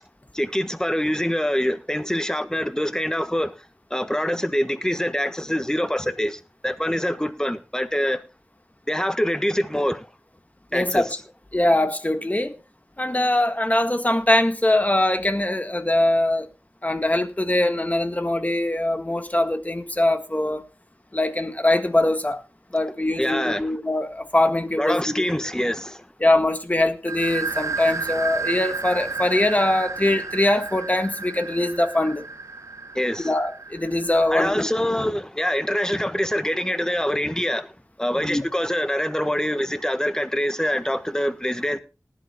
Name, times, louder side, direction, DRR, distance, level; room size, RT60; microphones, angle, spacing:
voice 1, 0.3-3.5 3.9-8.2 8.9-10.1 10.7-11.1 23.2-23.6 24.8-26.1 32.9-33.3 34.3-37.7 38.0-41.8, equal, 10° left, 1.4 m, -25 dB
voice 2, 10.7-11.1 11.5-12.6 13.0-16.5 16.8-20.6 21.1-22.4 22.7-25.0 26.2-32.2 33.2-34.7 38.2-38.4, left 1 dB, 30° left, 1.6 m, -22 dB
sound 1, 27.1-34.5, right 4 dB, 65° right, 0.6 m, -32 dB
19.0 x 11.5 x 2.3 m
wide cardioid pair, 55°, 6 cm